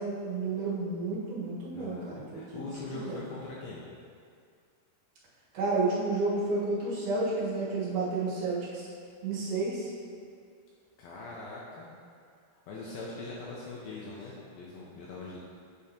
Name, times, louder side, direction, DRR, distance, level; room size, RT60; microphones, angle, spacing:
voice 1, 0.0-2.6 2.9-3.2 5.5-8.9 9.2-9.9, right 3 dB, 60° right, -7 dB, 2.7 m, -31 dB
voice 2, 1.7-3.8 11.0-11.9 12.7-15.4, left 3 dB, 75° left, -5 dB, 2.4 m, -41 dB
8.5 x 6.2 x 2.9 m, 2.2 s
omnidirectional pair, 4.7 m